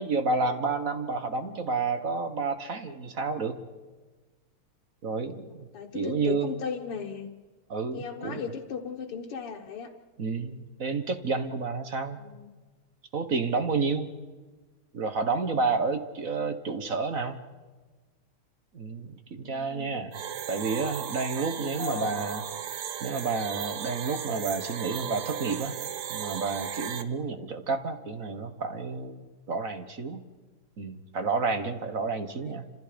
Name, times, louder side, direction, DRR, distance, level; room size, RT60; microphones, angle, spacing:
voice 1, 0.0-3.6 5.0-5.7 5.9-6.5 7.7-8.4 10.2-12.2 13.1-14.1 14.9-17.4 18.7-20.1 20.5-22.4 23.0-25.8 26.1-30.2 30.8-32.7, right 4 dB, 45° right, 8 dB, 1.5 m, -30 dB
voice 2, 5.7-7.3 7.9-9.9 12.1-12.5 19.3-20.0 21.7-22.2 32.4-32.6, left 6 dB, 85° left, -2 dB, 2.3 m, -37 dB
sound 1, 20.1-27.0, right 9 dB, 80° right, 2.0 m, -36 dB
29.0 x 26.5 x 5.2 m, 1.3 s
omnidirectional pair, 2.4 m